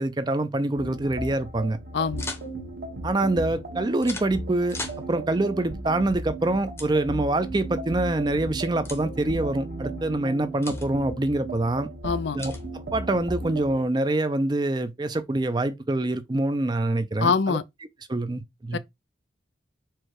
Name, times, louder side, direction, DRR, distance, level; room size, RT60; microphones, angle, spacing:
voice 1, 0.0-1.8 3.0-4.8 5.1-11.9 12.3-12.5 12.9-17.6 18.1-18.8, right 2 dB, 25° right, 0.4 m, -25 dB
sound 1, 0.8-13.9, right 2 dB, 55° right, 1.1 m, -36 dB
voice 2, 1.9-2.3 12.0-12.4 17.2-17.6 18.7-18.8, left 5 dB, 75° left, 0.5 m, -24 dB
sound 2, 2.2-2.5 4.0-4.3 4.7-5.0 6.8-6.9 8.8-9.0 10.6-10.9 12.4-12.6, left 2 dB, 15° left, 0.8 m, -36 dB
4.5 x 2.3 x 4.6 m
head